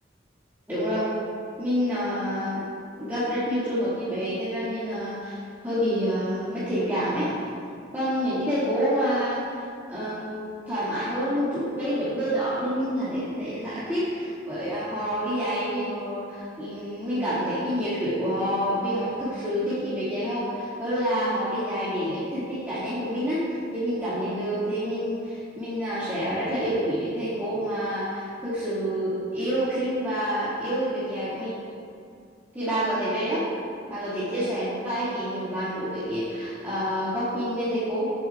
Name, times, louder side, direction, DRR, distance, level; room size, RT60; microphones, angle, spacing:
voice 1, 0.7-1.1 1.6-2.6 3.0-7.3 7.9-9.4 9.9-31.5 32.5-33.5 33.9-38.1, equal, 10° right, -14 dB, 2.2 m, -28 dB
15.0 x 7.7 x 2.4 m, 2.4 s
head